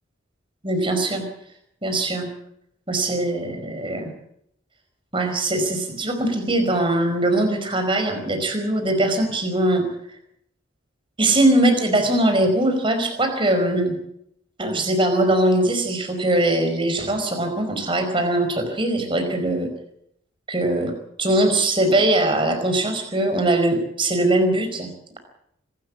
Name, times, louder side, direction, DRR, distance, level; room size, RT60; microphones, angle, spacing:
voice 1, 0.6-1.2 1.8-2.3 2.9-4.1 5.1-9.9 11.2-14.0 14.6-19.7 20.5-20.9 21.2-24.9, right 1 dB, 25° right, 6 dB, 4.8 m, -21 dB
25.5 x 13.0 x 8.6 m, 0.73 s
head